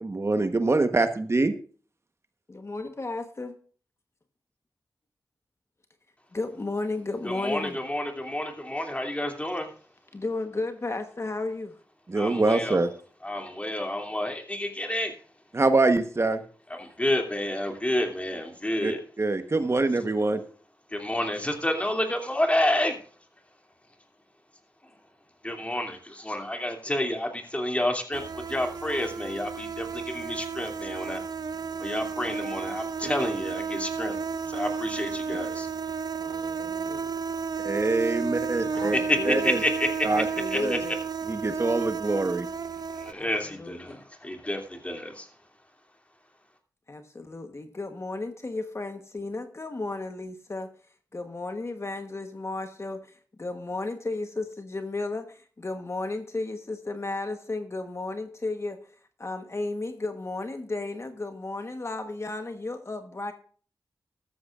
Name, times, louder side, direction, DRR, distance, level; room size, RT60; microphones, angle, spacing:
voice 1, 0.0-1.5 12.1-12.9 15.5-16.4 18.8-18.9 19.2-20.4 37.6-39.0 39.3-39.6 40.0-40.2 40.6-40.8 41.3-42.5, right 3 dB, 40° right, 1.1 m, -24 dB
voice 2, 2.5-3.5 6.3-7.8 10.1-11.8 36.2-37.1 38.7-39.6 40.1-40.9 43.1-44.0 46.9-50.7 51.1-63.3, left 2 dB, 40° left, 1.2 m, -34 dB
voice 3, 7.2-9.7 12.1-12.8 13.2-15.1 16.7-19.0 20.9-23.0 25.4-31.2 31.8-35.7 38.8-40.2 40.5-40.6 42.9-45.3, left 1 dB, 15° left, 2.7 m, -29 dB
sound 1, 28.1-43.1, right 5 dB, 60° right, 0.5 m, -32 dB
14.0 x 13.0 x 2.5 m
wide cardioid pair, 70°, 7 cm